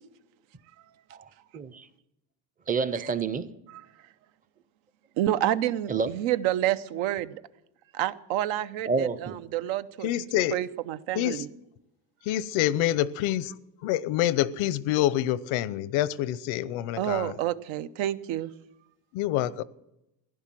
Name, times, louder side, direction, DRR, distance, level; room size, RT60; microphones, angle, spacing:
voice 1, 1.5-1.9 2.7-3.5 5.9-6.1 8.9-9.4, right 5 dB, 20° right, 0.5 m, -28 dB
voice 2, 5.2-7.4 7.9-10.1 10.5-11.5 17.0-18.5, right 13 dB, 80° right, 0.9 m, -29 dB
voice 3, 10.0-10.6 11.1-11.4 12.3-17.3 19.1-19.6, left 13 dB, 85° left, 0.8 m, -27 dB
16.0 x 11.0 x 7.5 m
cardioid pair, 160°, 47 cm